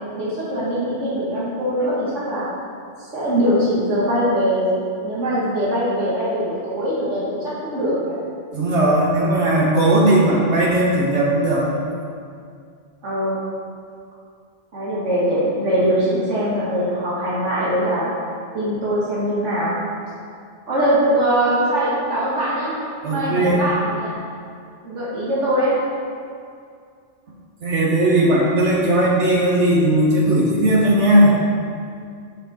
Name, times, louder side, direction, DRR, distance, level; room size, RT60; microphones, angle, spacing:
voice 1, 0.1-2.5 3.0-4.7 5.0-8.2 13.0-13.4 14.7-18.1 18.5-19.7 20.7-22.7 23.1-24.1 24.8-25.8, equal, 90° right, -8 dB, 2.0 m, -22 dB
voice 2, 8.5-11.7 23.0-23.6 27.6-31.3, right 1 dB, 70° right, -3 dB, 1.6 m, -17 dB
8.1 x 6.3 x 4.1 m, 2.3 s
omnidirectional pair, 1.2 m